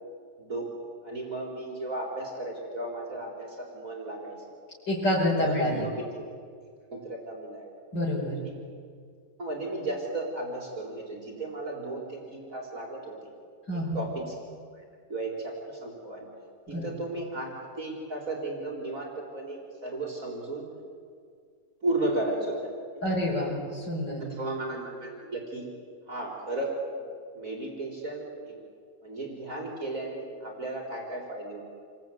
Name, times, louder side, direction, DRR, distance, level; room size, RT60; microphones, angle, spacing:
voice 1, 0.4-0.7 1.0-4.4 5.4-6.3 6.9-7.7 8.4-8.5 9.4-13.3 13.7-14.4 15.1-16.3 16.7-20.7 21.8-23.2 24.2-25.7 26.1-27.0 27.3-28.6 29.0-31.6, right 2 dB, 50° right, 0 dB, 4.7 m, -35 dB
voice 2, 4.9-5.9 7.9-8.4 13.7-14.1 16.7-16.9 23.0-24.3, left 1 dB, 85° left, -6 dB, 6.1 m, -28 dB
28.5 x 22.5 x 9.3 m, 2.1 s
omnidirectional pair, 1.9 m